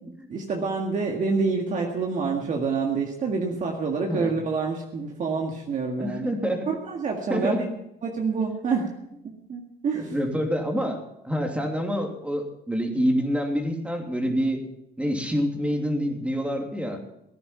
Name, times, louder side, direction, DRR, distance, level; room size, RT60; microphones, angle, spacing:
voice 1, 0.0-6.3 6.7-7.7 8.0-8.9 9.5-10.1, right 4 dB, 50° right, 1 dB, 2.0 m, -27 dB
voice 2, 6.0-6.7 7.3-7.6 9.9-11.0 11.2-14.6 15.0-17.0, equal, 5° right, 2 dB, 2.8 m, -26 dB
17.5 x 10.0 x 5.7 m, 0.82 s
cardioid pair, 110°, 17 cm